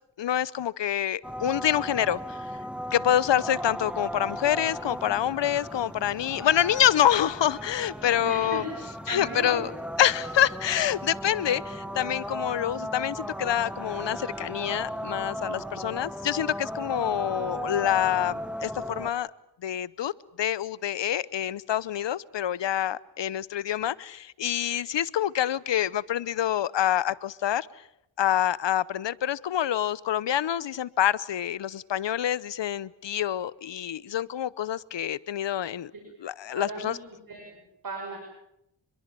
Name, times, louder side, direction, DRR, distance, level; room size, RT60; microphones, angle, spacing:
voice 1, 0.2-2.4 2.9-8.6 9.1-9.7 10.0-19.3 19.6-20.1 20.4-27.7 28.2-35.9 36.2-37.0, left 11 dB, 75° left, 21 dB, 0.9 m, -26 dB
sound 1, 1.2-19.1, equal, ahead, 1.6 m, -36 dB
voice 2, 8.2-8.6 9.1-9.7 35.9-36.0 36.5-38.2, right 3 dB, 50° right, 2 dB, 6.2 m, -37 dB
26.5 x 22.0 x 7.6 m, 0.80 s
cardioid pair, 75°, 43 cm